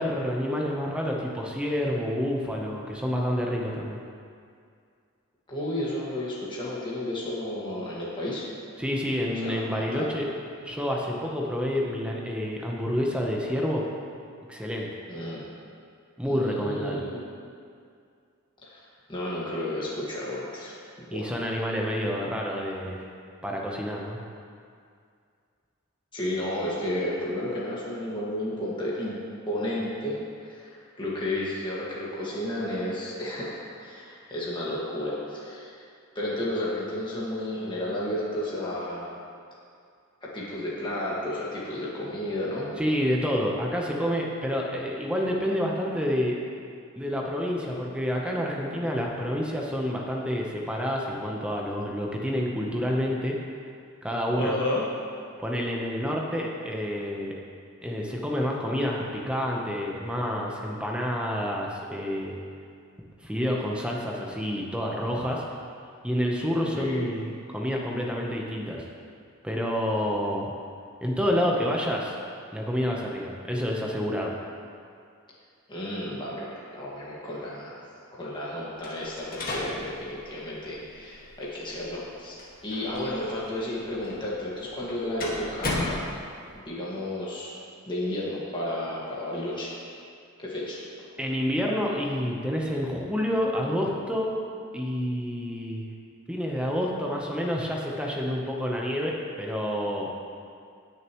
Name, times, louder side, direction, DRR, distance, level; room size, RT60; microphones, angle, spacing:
voice 1, 0.0-4.0 8.8-10.3 10.6-13.8 14.5-14.9 16.2-17.0 21.1-23.1 23.4-24.2 42.8-46.4 47.0-53.4 54.0-54.5 55.4-57.4 57.8-62.3 63.2-65.4 66.0-68.8 69.4-70.5 71.0-72.1 72.5-74.3 91.2-94.3 94.7-95.9 96.3-100.1, equal, 5° right, -2 dB, 0.9 m, -28 dB
voice 2, 5.5-8.5 9.3-10.1 15.1-15.5 16.3-17.2 18.7-20.8 21.1-21.3 26.1-29.2 29.5-35.8 36.2-39.1 40.2-42.7 54.4-54.8 66.8-67.1 75.7-77.8 78.1-82.4 82.6-86.1 86.6-87.6 87.9-89.7 90.4-90.8, left 1 dB, 20° left, -7 dB, 1.8 m, -32 dB
sound 1, 78.8-86.6, left 2 dB, 45° left, 1.8 m, -37 dB
19.5 x 6.7 x 3.1 m, 2.3 s
head